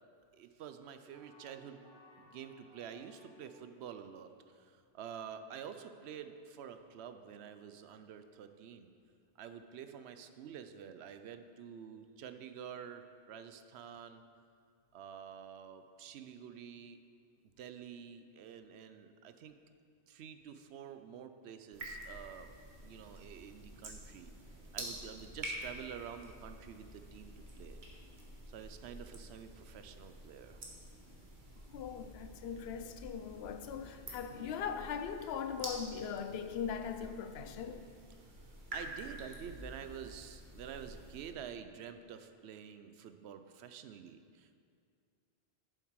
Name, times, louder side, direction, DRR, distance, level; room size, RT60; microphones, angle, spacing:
voice 1, 0.3-1.8 2.2-8.9 9.4-14.2 14.9-17.0 17.6-19.6 20.1-22.5 22.8-24.3 24.7-27.8 28.5-30.6 38.2-38.3 38.7-44.5, right 8 dB, 80° right, 0.8 m, -48 dB
sound 1, 1.1-4.0, left 1 dB, 5° left, 2.1 m, -61 dB
sound 2, 21.7-41.3, right 1 dB, 50° right, 1.4 m, -49 dB
voice 2, 31.7-37.9, left 7 dB, 75° left, 0.8 m, -40 dB
7.9 x 7.3 x 4.7 m
omnidirectional pair, 1.1 m